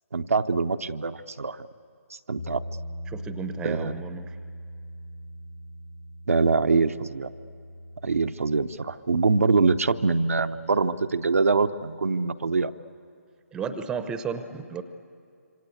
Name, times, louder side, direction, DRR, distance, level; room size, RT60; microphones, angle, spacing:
voice 1, 0.1-1.7 2.3-2.6 3.6-3.9 6.3-7.3 8.0-12.7, right 4 dB, 65° right, 8 dB, 0.8 m, -24 dB
Bass guitar, 2.4-8.6, equal, 75° left, 7.4 m, -40 dB
voice 2, 3.1-4.4 13.5-14.8, right 6 dB, 10° right, 11 dB, 0.8 m, -33 dB
26.5 x 26.0 x 8.3 m, 2.4 s
figure-of-eight pair, 140°, 8 cm